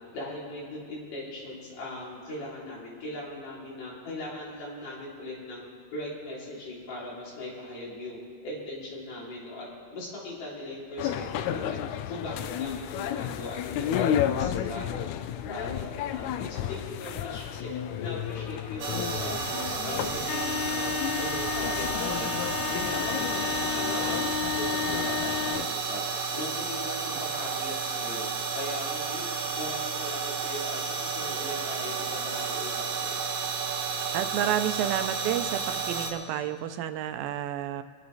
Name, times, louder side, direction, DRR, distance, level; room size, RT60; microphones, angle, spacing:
voice 1, 0.1-5.6 5.9-11.8 12.1-15.1 15.5-17.7 18.0-20.9 21.2-26.0 26.3-28.3 28.6-29.3 29.6-32.7 33.0-33.2, left 1 dB, 65° left, -6 dB, 5.0 m, -39 dB
sound 1, 11.0-25.7, left 9 dB, 90° left, 1.7 m, -31 dB
sound 2, 18.8-36.1, right 5 dB, 65° right, 1.4 m, -32 dB
voice 2, 34.1-37.8, right 10 dB, 85° right, 10 dB, 2.5 m, -30 dB
27.0 x 10.0 x 4.1 m, 2.3 s
omnidirectional pair, 4.0 m